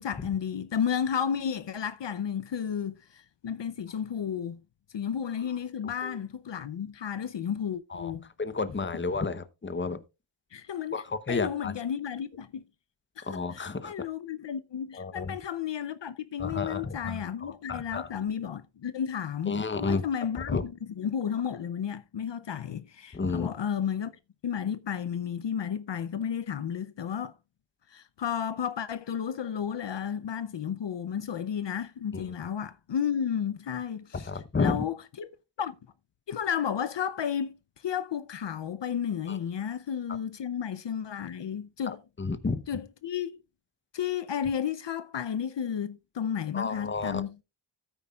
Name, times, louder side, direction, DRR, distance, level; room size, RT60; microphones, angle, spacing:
voice 1, 0.0-4.6 4.9-8.2 10.5-12.6 13.2-24.1 24.4-27.3 27.9-34.3 34.6-35.3 35.6-35.8 36.3-42.0 42.7-43.3 43.9-47.4, left 8 dB, 65° left, 0.7 m, -32 dB
voice 2, 8.4-10.0 10.9-11.7 13.2-13.9 14.9-15.3 16.4-18.1 19.5-20.1 20.5-20.6 23.1-23.5 32.1-32.2 34.1-34.8 39.3-39.4 41.9-42.6 46.5-47.2, left 4 dB, 25° left, 0.8 m, -31 dB
13.5 x 9.1 x 2.4 m
wide cardioid pair, 85°, 47 cm